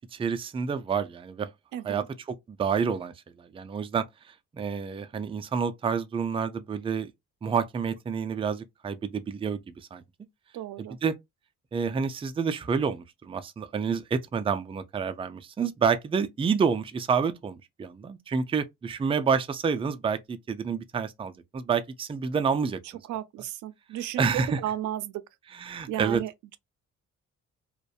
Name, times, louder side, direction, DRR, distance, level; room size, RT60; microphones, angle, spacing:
voice 1, 0.1-1.5 1.8-3.1 3.4-4.1 4.5-7.1 7.4-9.6 9.9-10.0 11.0-11.1 11.7-22.8 24.2-24.6 25.5-26.2, right 6 dB, 20° right, 0.3 m, -28 dB
voice 2, 1.7-2.0 10.5-11.0 23.1-25.1 25.9-26.6, right 12 dB, 80° right, 0.4 m, -34 dB
2.5 x 2.2 x 2.3 m
cardioid pair, 90°, 30 cm